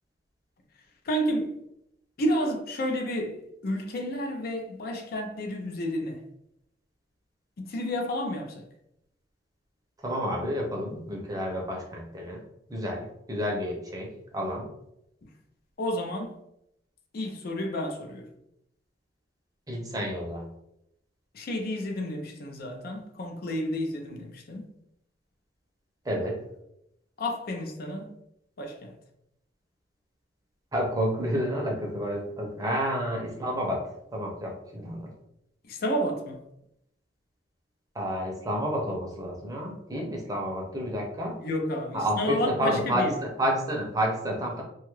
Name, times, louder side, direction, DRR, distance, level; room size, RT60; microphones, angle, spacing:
voice 1, 1.1-1.6 2.2-3.4 3.6-6.2 7.6-8.6 15.8-16.3 17.1-18.3 21.3-24.7 27.2-28.1 28.6-28.9 35.7-36.4 41.4-43.1, equal, 55° left, 0.4 m, -30 dB
voice 2, 10.0-12.4 12.7-14.6 19.7-20.5 26.0-26.4 30.7-33.8 34.1-35.1 37.9-41.3 41.9-44.6, equal, 20° right, 0.6 m, -30 dB
2.7 x 2.3 x 3.1 m
head